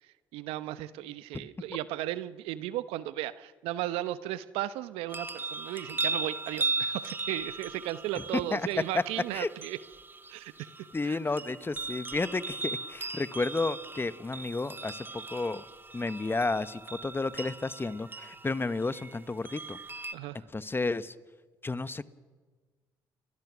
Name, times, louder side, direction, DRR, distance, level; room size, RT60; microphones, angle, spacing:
voice 1, 0.3-9.8 10.3-10.7 11.0-11.2 20.1-20.4, right 14 dB, 80° right, 15 dB, 0.9 m, -35 dB
sound 1, 5.1-20.1, right 3 dB, 20° right, 1.5 m, -38 dB
voice 2, 8.3-8.7 8.9-9.0 9.3-9.5 10.9-15.6 15.9-19.8 20.5-21.1 21.6-22.0, left 3 dB, 25° left, 15 dB, 1.1 m, -32 dB
29.0 x 21.5 x 6.2 m, 1.4 s
hypercardioid pair, 55°, 10 cm